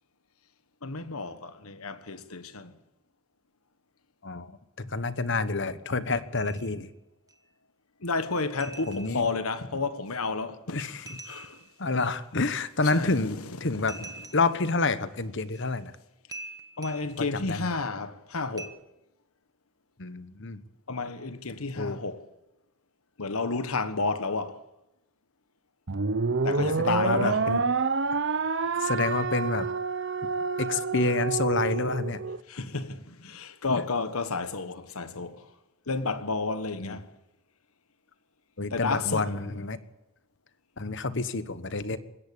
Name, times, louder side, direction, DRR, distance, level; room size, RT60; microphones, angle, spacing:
voice 1, 0.8-2.7 8.0-11.6 12.8-13.2 16.8-18.8 20.9-22.2 23.2-24.6 26.4-27.4 32.5-35.5 35.9-37.1 38.7-39.3, left 3 dB, 80° left, 1.4 m, -31 dB
voice 2, 4.2-6.9 8.9-9.3 10.7-11.2 11.8-14.0 14.3-15.9 17.2-17.7 20.0-20.6 21.8-22.0 26.6-27.6 28.8-29.7 30.6-32.2 33.7-33.8 36.8-37.0 38.6-39.8 40.8-42.0, left 3 dB, 55° left, 1.2 m, -28 dB
sound 1, 6.4-6.8 7.3-7.4 8.6-9.4 11.1-11.8 13.9-14.7 15.5-15.7 16.3-17.2 18.6-18.7, right 2 dB, 15° right, 1.2 m, -44 dB
sound 2, 25.9-32.4, right 4 dB, 55° right, 0.8 m, -28 dB
21.0 x 17.0 x 8.5 m
head